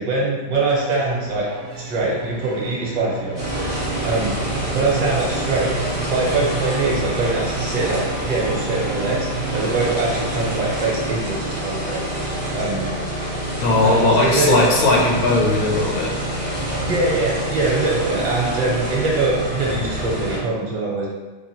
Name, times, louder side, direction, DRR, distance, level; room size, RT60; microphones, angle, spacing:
voice 1, 0.0-1.5 1.8-3.8 4.0-4.4 4.7-5.7 6.1-8.0 8.3-12.0 12.5-12.9 13.8-14.6 16.8-21.1, right 2 dB, 65° right, -4 dB, 1.4 m, -23 dB
sound 1, 0.8-10.9, right 4 dB, 80° right, 1.4 m, -34 dB
sound 2, 3.4-20.4, right 1 dB, 35° right, 0.7 m, -26 dB
voice 2, 13.6-16.1, left 2 dB, 75° left, -2 dB, 1.2 m, -18 dB
4.7 x 2.3 x 2.9 m, 1.3 s
omnidirectional pair, 2.2 m